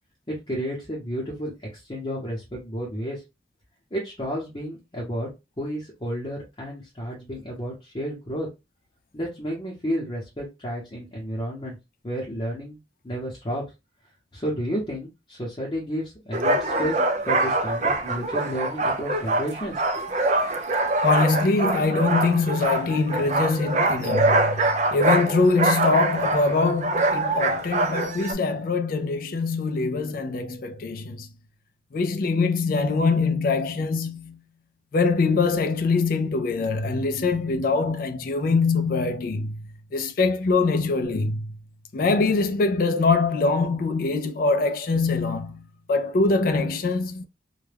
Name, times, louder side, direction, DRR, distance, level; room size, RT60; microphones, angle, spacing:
voice 1, 0.3-3.2 3.9-5.3 5.6-8.5 9.1-11.8 12.0-12.8 13.0-13.6 14.3-17.0 17.3-20.0, equal, 25° left, 0.8 m, -31 dB
sound 1, 16.3-28.3, right 2 dB, 40° right, 0.4 m, -24 dB
voice 2, 21.0-31.3 31.9-34.4 34.9-39.6 39.9-41.5 41.9-47.2, left 3 dB, 50° left, 0.3 m, -23 dB
2.2 x 2.2 x 3.3 m
head